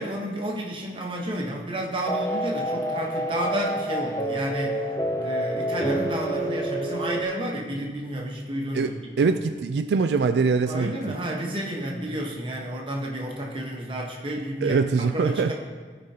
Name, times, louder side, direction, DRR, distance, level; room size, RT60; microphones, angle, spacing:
voice 1, 0.0-4.9 5.1-9.5 10.7-14.8 15.1-15.5, right 1 dB, 30° right, -1 dB, 1.1 m, -31 dB
sound 1, 2.1-7.2, right 1 dB, 20° left, 0.4 m, -28 dB
voice 2, 9.2-11.1 14.6-15.5, right 4 dB, 75° right, 8 dB, 0.3 m, -23 dB
16.0 x 5.3 x 2.8 m, 1.5 s
head